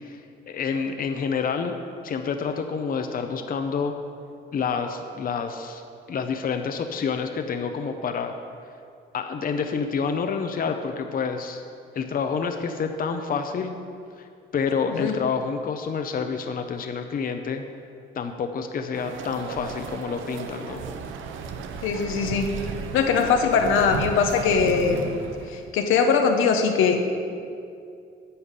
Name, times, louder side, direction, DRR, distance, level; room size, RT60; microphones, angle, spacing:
voice 1, 0.0-1.8 2.0-3.9 4.5-5.8 6.1-8.4 9.1-11.6 11.9-13.7 14.2-14.3 14.5-17.6 18.2-20.8, left 5 dB, 45° left, 6 dB, 0.7 m, -28 dB
sound 1, 18.9-25.7, right 5 dB, 85° right, 0.8 m, -35 dB
voice 2, 21.8-22.5 22.9-25.2 25.5-27.0, left 5 dB, 85° left, 4 dB, 1.0 m, -21 dB
10.0 x 5.7 x 8.2 m, 2.4 s
cardioid pair, 90°, 20 cm